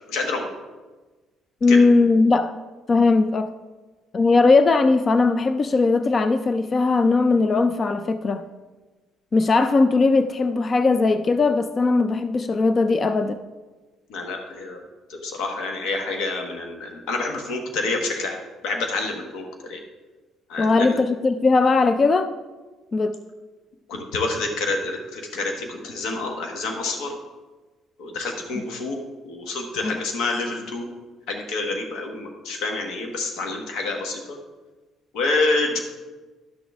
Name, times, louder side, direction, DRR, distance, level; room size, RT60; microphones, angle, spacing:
voice 1, 0.1-0.5 1.7-1.8 14.1-14.8 15.1-18.4 18.6-19.8 20.5-21.0 23.9-27.2 28.0-29.0 29.3-30.9 31.3-34.4 35.1-35.8, left 3 dB, 85° left, 2 dB, 1.1 m, -27 dB
voice 2, 1.6-2.5 2.9-3.5 4.1-8.4 9.3-13.4 20.6-22.3 22.9-23.2 29.8-30.0, left 3 dB, 30° left, 10 dB, 0.3 m, -19 dB
11.5 x 6.4 x 3.4 m, 1.3 s
cardioid pair, 145°, 0 cm